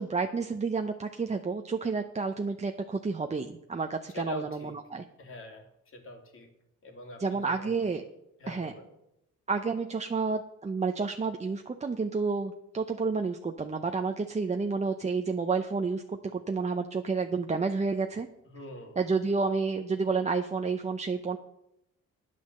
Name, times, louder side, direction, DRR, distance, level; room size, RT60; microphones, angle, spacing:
voice 1, 0.0-5.0 7.2-8.0 8.5-8.7 9.5-18.3 19.0-21.4, right 4 dB, 25° right, 5 dB, 0.8 m, -30 dB
voice 2, 4.1-4.8 5.2-6.5 6.8-7.8 8.4-8.9 18.4-19.0, left 2 dB, 45° left, 3 dB, 2.8 m, -43 dB
9.6 x 8.5 x 6.7 m, 0.87 s
cardioid pair, 90°, 30 cm